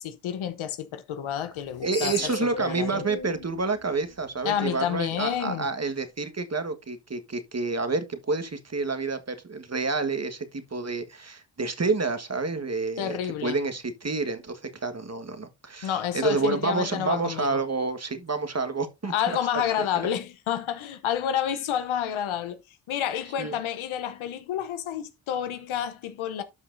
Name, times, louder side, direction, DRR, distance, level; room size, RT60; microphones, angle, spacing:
voice 1, 0.0-3.0 4.4-5.7 13.0-13.6 15.8-17.6 19.1-22.6 22.9-26.4, left 9 dB, 90° left, 0.9 m, -29 dB
Screech, 1.6-4.8, left 3 dB, 50° left, 3.6 m, -38 dB
voice 2, 1.8-19.4 23.4-23.6, right 3 dB, 35° right, 1.5 m, -29 dB
12.0 x 5.7 x 2.6 m
supercardioid pair, 45°, 47 cm